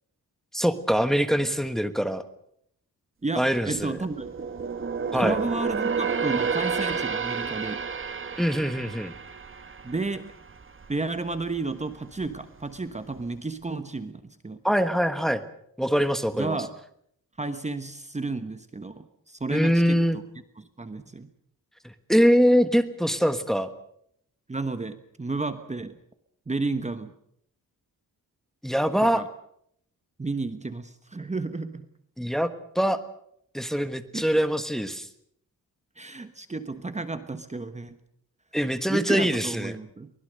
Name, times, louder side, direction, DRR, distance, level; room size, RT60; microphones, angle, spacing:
voice 1, 0.5-2.2 3.4-4.0 5.1-5.4 8.4-9.1 14.6-15.4 15.8-16.6 19.5-20.2 22.1-23.7 28.6-29.2 32.2-33.0 33.5-35.1 38.5-39.7, equal, ahead, 10 dB, 1.4 m, -23 dB
voice 2, 3.2-4.3 5.1-7.8 9.8-10.3 10.9-14.6 16.3-16.7 17.4-20.2 20.6-21.3 24.5-26.0 26.5-27.1 29.0-29.3 30.2-31.9 34.1-34.3 36.0-38.0 38.9-40.1, right 3 dB, 20° right, 10 dB, 1.2 m, -32 dB
sound 1, 3.4-11.0 11.3-11.6 12.1-12.8 13.2-13.3, right 5 dB, 35° right, 1.2 m, -31 dB
23.5 x 20.5 x 6.7 m, 0.69 s
wide cardioid pair, 125°, 34 cm